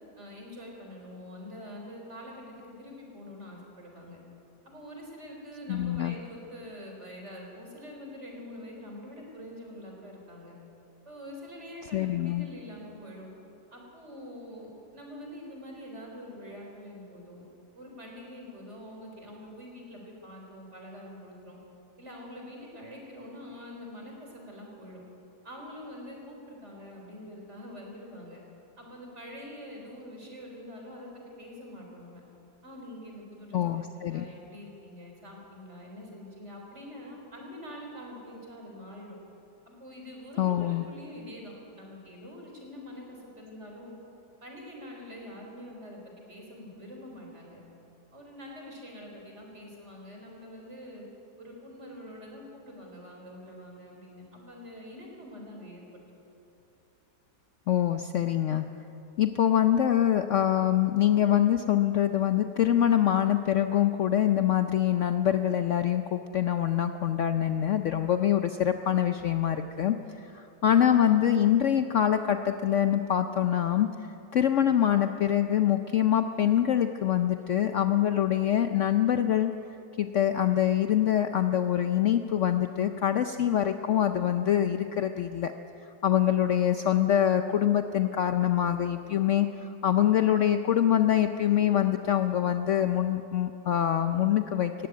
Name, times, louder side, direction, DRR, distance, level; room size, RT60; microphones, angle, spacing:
voice 1, 0.2-4.2 4.6-10.5 11.1-13.3 13.7-17.4 17.8-21.6 22.0-25.0 25.4-28.4 28.8-32.2 32.6-39.2 39.7-44.0 44.4-47.6 48.1-51.0 51.4-56.0, left 1 dB, 45° right, 0 dB, 4.3 m, -45 dB
voice 2, 5.7-6.1 11.9-12.5 33.5-34.3 40.4-40.8 57.7-58.6 59.2-79.5 80.0-85.5 85.8-94.9, left 10 dB, 60° left, 8 dB, 0.8 m, -25 dB
18.0 x 15.5 x 9.3 m, 3.0 s
omnidirectional pair, 1.7 m